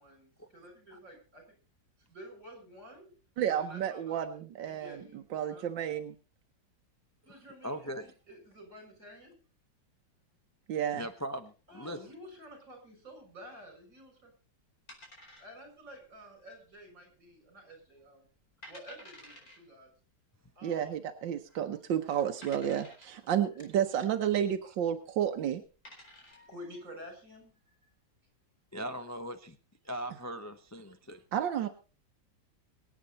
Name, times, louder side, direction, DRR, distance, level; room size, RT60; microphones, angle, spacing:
voice 1, 0.0-1.6 2.1-3.1 3.5-4.4 4.6-5.2 5.5-5.7 7.2-9.4 11.7-14.3 15.4-18.3 18.7-19.9 20.6-21.0 21.7-21.8 26.3-27.6, equal, 50° right, 3 dB, 7.2 m, -50 dB
voice 2, 3.4-5.0 5.3-6.2 10.7-11.0 20.6-25.6 31.3-31.7, right 9 dB, 90° right, 7 dB, 1.7 m, -31 dB
voice 3, 7.3-8.1 10.9-12.0 22.7-22.8 28.7-29.6 29.8-31.2, equal, 20° left, 7 dB, 0.4 m, -40 dB
sound 1, 14.9-15.8 16.1-16.2 16.8-17.2 17.6-17.7 18.3-18.4 18.6-19.6 20.7-20.8 21.5-21.6 22.4-23.2 25.1-25.3 25.6-26.5, left 1 dB, 50° left, 5.1 m, -52 dB
23.5 x 8.8 x 4.0 m, 0.35 s
omnidirectional pair, 1.9 m